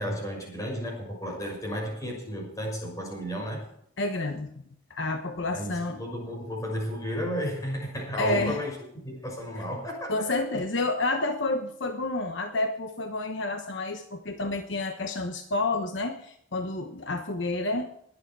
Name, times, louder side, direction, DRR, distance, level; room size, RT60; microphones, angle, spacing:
voice 1, 0.0-3.6 5.5-8.8 9.0-10.3, equal, 15° left, 0 dB, 6.1 m, -33 dB
voice 2, 4.0-4.6 4.9-6.0 8.2-8.6 10.1-17.9, left 2 dB, 60° left, 6 dB, 1.2 m, -29 dB
21.5 x 8.7 x 4.8 m, 0.71 s
head